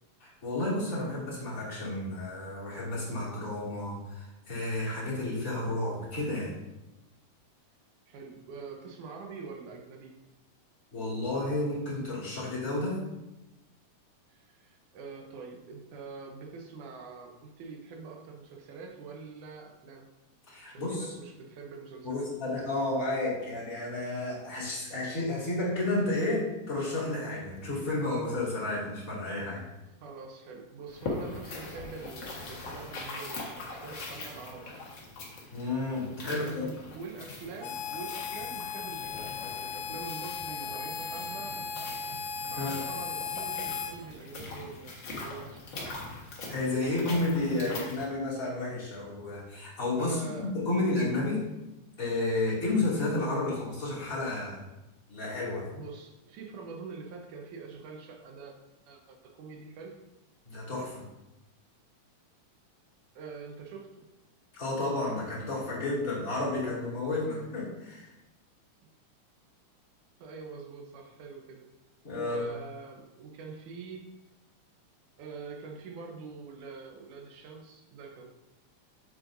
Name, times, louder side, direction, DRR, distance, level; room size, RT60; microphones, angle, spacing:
voice 1, 0.2-6.5 10.9-13.0 20.5-21.1 22.0-29.6 35.5-36.7 42.6-42.8 46.5-50.2 50.5-51.5 52.0-54.6 55.1-55.7 60.5-61.0 64.5-68.1 72.0-72.5, left 2 dB, 25° left, -7 dB, 2.6 m, -31 dB
voice 2, 8.1-10.2 14.3-20.1 20.7-22.3 30.0-34.8 36.1-41.6 42.5-46.0 50.0-50.8 55.7-58.5 58.9-60.0 63.2-64.1 70.2-71.7 72.1-74.1 75.2-78.3, right 4 dB, 75° right, 3 dB, 2.4 m, -45 dB
sound 1, 30.9-48.1, left 2 dB, 50° left, 1.6 m, -42 dB
Harmonica, 37.6-44.0, left 6 dB, 90° left, 2.2 m, -36 dB
7.9 x 7.4 x 2.6 m, 0.97 s
omnidirectional pair, 3.6 m